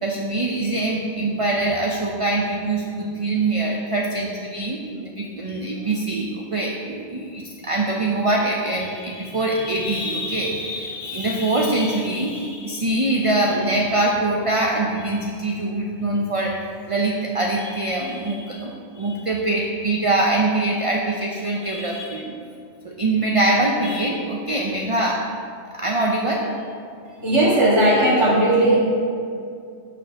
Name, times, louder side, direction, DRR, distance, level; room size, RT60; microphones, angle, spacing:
voice 1, 0.0-16.6 16.9-22.4 22.8-25.2 25.7-26.5, right 2 dB, 40° right, -1 dB, 0.5 m, -23 dB
voice 2, 27.2-28.8, right 1 dB, 70° right, -6 dB, 2.2 m, -17 dB
6.6 x 5.2 x 5.7 m, 2.4 s
omnidirectional pair, 1.3 m